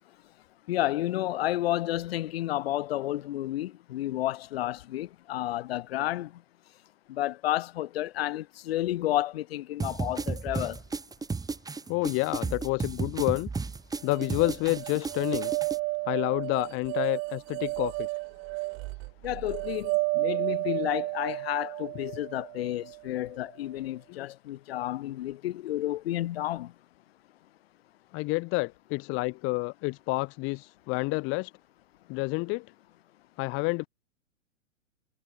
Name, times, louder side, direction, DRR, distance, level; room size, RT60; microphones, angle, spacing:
voice 1, 0.7-6.3 7.1-10.8 19.2-26.7, left 14 dB, 50° left, 6.7 m, -31 dB
sound 1, 9.8-15.8, right 4 dB, 10° right, 7.1 m, -33 dB
voice 2, 11.9-13.5 14.0-15.5 16.1-18.1 24.1-24.3 28.1-31.5 32.1-32.6 33.4-33.8, left 27 dB, 35° left, 2.6 m, -29 dB
sound 2, 14.1-23.2, right 29 dB, 35° right, 2.4 m, -32 dB
figure-of-eight pair, 115°, 38 cm